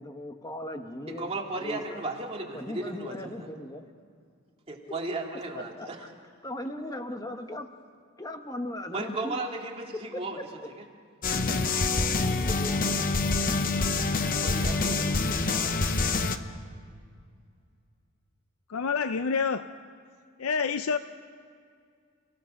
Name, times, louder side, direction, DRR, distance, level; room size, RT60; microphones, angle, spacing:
voice 1, 0.0-2.0 2.5-3.9 5.1-5.9 6.4-7.7 8.2-9.4 10.4-10.5 11.9-12.9, left 1 dB, 15° left, 6 dB, 1.1 m, -38 dB
voice 2, 1.2-3.5 4.7-6.1 8.9-10.4 14.4-15.9, right 2 dB, 30° right, 0 dB, 2.3 m, -35 dB
sound 1, 11.2-16.4, left 3 dB, 40° left, 0.9 m, -26 dB
voice 3, 18.7-19.7 20.4-21.0, left 5 dB, 80° left, 11 dB, 0.5 m, -27 dB
28.5 x 17.0 x 6.5 m, 2.2 s
head